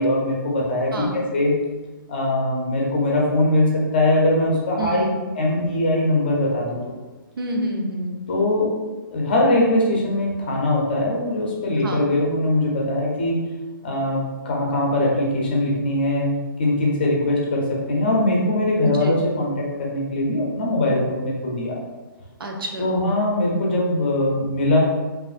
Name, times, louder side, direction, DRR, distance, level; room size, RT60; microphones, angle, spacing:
voice 1, 0.0-1.5 2.1-5.1 5.4-6.9 8.3-8.7 9.1-13.4 13.8-16.3 16.6-21.8 22.8-24.8, left 1 dB, 25° left, -2 dB, 0.6 m, -21 dB
voice 2, 0.9-1.3 4.8-5.3 7.4-8.3 11.8-12.1 18.9-19.2 22.4-23.0, right 1 dB, 80° right, 1 dB, 0.8 m, -28 dB
5.0 x 2.5 x 2.5 m, 1.2 s
hypercardioid pair, 175°, 12 cm